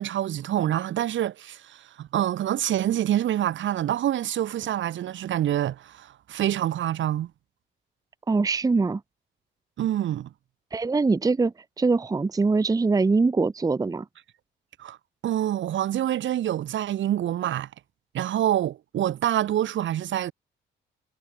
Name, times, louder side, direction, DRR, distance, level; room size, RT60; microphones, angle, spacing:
voice 1, 0.0-7.3 9.8-10.3 14.8-15.0 15.2-17.7 18.1-20.3, right 12 dB, 70° right, 2.4 m, -26 dB
voice 2, 8.3-9.0 10.7-14.0, right 3 dB, 20° right, 0.7 m, -23 dB
cardioid pair, 90°, 20 cm